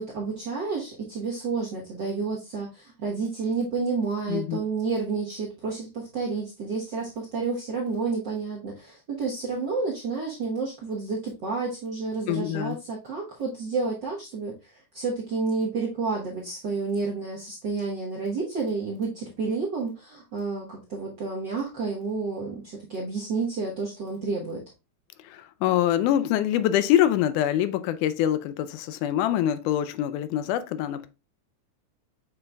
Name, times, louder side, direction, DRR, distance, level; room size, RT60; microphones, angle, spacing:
voice 1, 0.0-24.6, right 4 dB, 60° right, 1.2 m, -30 dB
voice 2, 4.3-4.6 12.3-12.8 25.3-31.1, left 11 dB, 90° left, 2.1 m, -24 dB
7.8 x 5.6 x 2.3 m
omnidirectional pair, 3.6 m